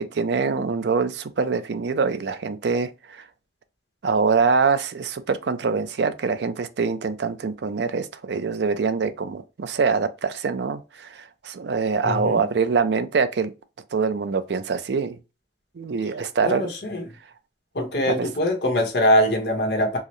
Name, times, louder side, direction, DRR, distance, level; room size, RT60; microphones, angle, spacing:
voice 1, 0.0-3.2 4.0-13.5 13.9-15.2 15.8-16.7, right 5 dB, 75° right, 0.4 m, -24 dB
voice 2, 12.0-12.5 16.4-17.1 17.7-20.0, left 1 dB, 70° left, 1.1 m, -23 dB
4.6 x 2.0 x 3.0 m
head